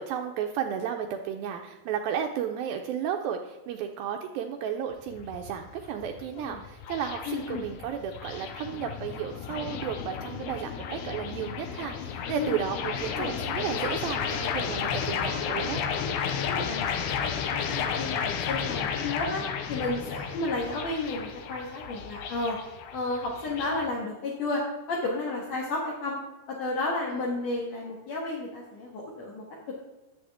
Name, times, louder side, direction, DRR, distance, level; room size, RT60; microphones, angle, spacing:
voice 1, 0.0-15.8 17.7-18.0 25.6-25.7 27.1-27.3, right 8 dB, 80° right, 4 dB, 2.2 m, -33 dB
sound 1, 4.9-23.9, left 7 dB, 85° left, 2.8 m, -33 dB
voice 2, 7.3-7.6 12.4-13.3 16.4-16.8 17.5-19.4 19.7-22.6 22.9-24.6 24.9-26.2 26.5-29.4, left 2 dB, 60° left, -3 dB, 2.0 m, -32 dB
12.0 x 7.8 x 3.4 m, 1.1 s
omnidirectional pair, 4.7 m